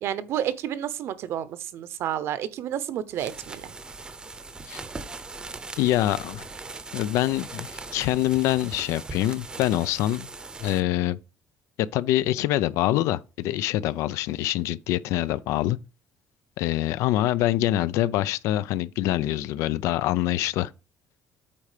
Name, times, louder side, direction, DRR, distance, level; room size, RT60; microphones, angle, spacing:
voice 1, 0.0-3.7, right 10 dB, 60° right, 0.8 m, -30 dB
sound 1, 3.1-10.8, right 3 dB, 15° right, 0.7 m, -40 dB
voice 2, 5.8-6.5 6.9-10.3 10.6-11.2 11.8-15.8 16.6-20.7, left 14 dB, 85° left, 0.5 m, -25 dB
8.6 x 4.3 x 5.0 m
cardioid pair, 155°, 5 cm